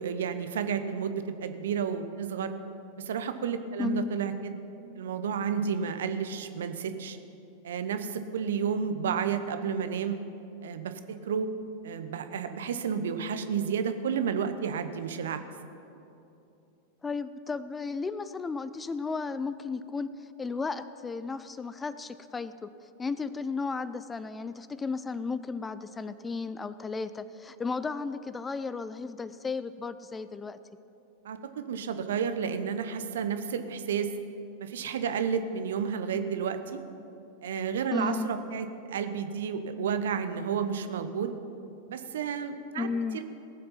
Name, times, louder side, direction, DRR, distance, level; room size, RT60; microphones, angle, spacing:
voice 1, 0.0-2.5 3.0-4.6 4.9-7.2 7.6-10.2 10.6-11.5 11.8-15.4 31.2-34.1 34.6-36.8 37.4-41.3 41.9-42.9 43.1-43.2, right 7 dB, 60° right, 9 dB, 0.8 m, -31 dB
voice 2, 3.8-4.1 17.0-22.7 23.0-30.6 37.9-38.3 42.8-43.2, left 4 dB, 15° left, 14 dB, 0.4 m, -34 dB
18.5 x 7.8 x 5.7 m, 2.8 s
figure-of-eight pair, 90°, 0 cm